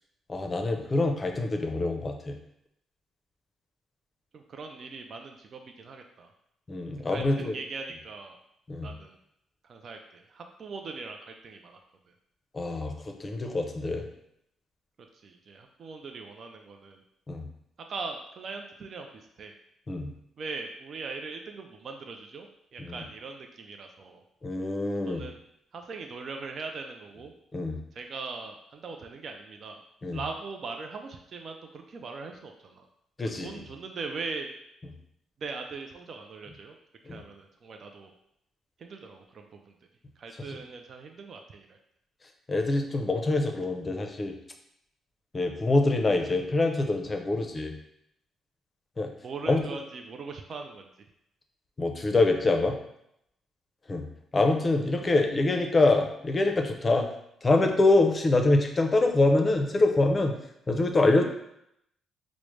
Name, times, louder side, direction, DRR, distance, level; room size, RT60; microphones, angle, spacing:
voice 1, 0.3-2.4 6.7-7.5 8.7-8.9 12.5-12.9 13.2-14.0 17.3-17.5 19.9-20.1 22.8-23.0 24.4-25.2 27.5-27.8 30.0-30.2 33.2-33.5 37.1-37.2 42.5-44.3 45.3-47.7 49.0-49.1 49.5-49.6 51.8-52.7 53.9-54.0 54.3-57.1 57.4-60.3 60.7-61.2, left 2 dB, 30° left, 3 dB, 0.5 m, -25 dB
voice 2, 4.3-6.3 7.1-8.4 8.8-9.2 9.6-11.8 12.1-12.2 15.1-17.0 17.9-19.5 20.4-24.2 25.1-25.4 25.7-27.3 27.9-29.8 30.1-32.9 33.2-34.5 35.4-36.8 37.0-38.1 38.8-39.8 40.2-41.8 49.2-50.9, right 4 dB, 55° right, 4 dB, 0.4 m, -40 dB
4.8 x 2.1 x 3.1 m, 0.77 s
cardioid pair, 80°, 0 cm